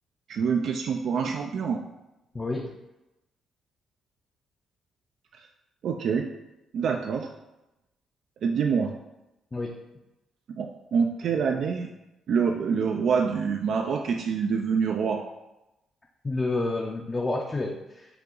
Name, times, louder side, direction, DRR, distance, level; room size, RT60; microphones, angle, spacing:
voice 1, 0.3-1.8 5.8-6.3 6.7-7.3 8.4-8.9 10.6-11.9 12.3-15.2, right 6 dB, 65° right, 3 dB, 0.3 m, -26 dB
voice 2, 2.3-2.7 9.5-9.7 16.2-18.1, left 2 dB, 25° left, 0 dB, 0.5 m, -29 dB
5.6 x 2.5 x 3.8 m, 0.95 s
cardioid pair, 90°, 0 cm